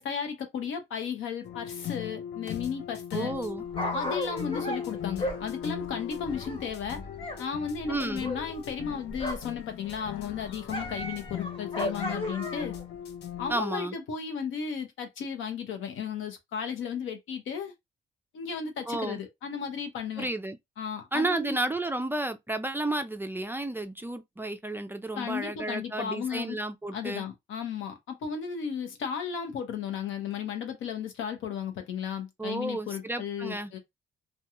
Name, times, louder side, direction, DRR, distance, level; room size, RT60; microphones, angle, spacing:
voice 1, 0.0-3.3 3.9-7.0 7.4-12.8 13.4-17.7 18.3-20.3 20.8-21.6 25.2-26.6 26.9-33.8, left 7 dB, 80° left, 0.8 m, -34 dB
sound 1, 1.4-13.6, left 10 dB, 60° left, 0.5 m, -39 dB
voice 2, 3.1-3.6 7.9-8.3 13.5-14.0 18.9-19.2 20.2-20.6 21.1-27.3 32.4-33.7, right 2 dB, 10° right, 0.3 m, -32 dB
Dog, 3.3-7.4 7.7-9.6 9.9-12.8 13.5-13.6, left 1 dB, 30° left, 1.0 m, -36 dB
2.4 x 2.2 x 2.9 m
cardioid pair, 90°, 20 cm